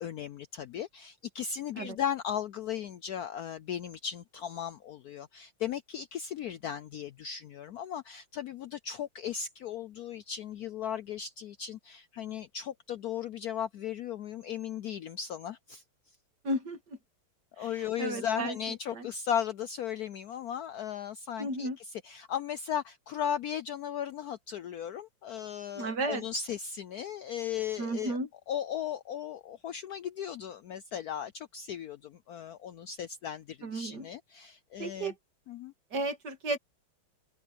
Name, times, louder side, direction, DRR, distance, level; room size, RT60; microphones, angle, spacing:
voice 1, 0.0-15.8 17.6-28.2 28.5-35.1 35.5-35.7, left 9 dB, 75° left, 0.8 m, -36 dB
voice 2, 16.4-16.8 17.6-17.7 18.0-18.6 18.9-19.1 21.4-21.8 25.7-26.2 27.8-28.3 33.6-34.1 34.8-35.1 35.9-36.6, right 2 dB, 55° right, 2.3 m, -33 dB
omnidirectional pair, 2.2 m